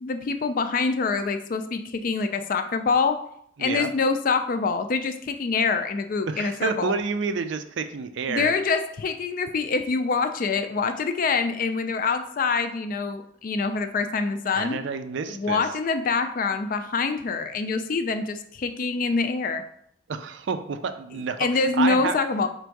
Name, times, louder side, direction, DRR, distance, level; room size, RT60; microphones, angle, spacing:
voice 1, 0.0-3.2 3.6-6.9 8.3-14.8 15.3-19.6 21.4-22.5, left 4 dB, 45° left, 9 dB, 0.3 m, -25 dB
voice 2, 6.3-8.5 14.5-15.6 20.1-22.2, right 5 dB, 65° right, 9 dB, 0.4 m, -29 dB
4.5 x 2.6 x 4.6 m, 0.67 s
head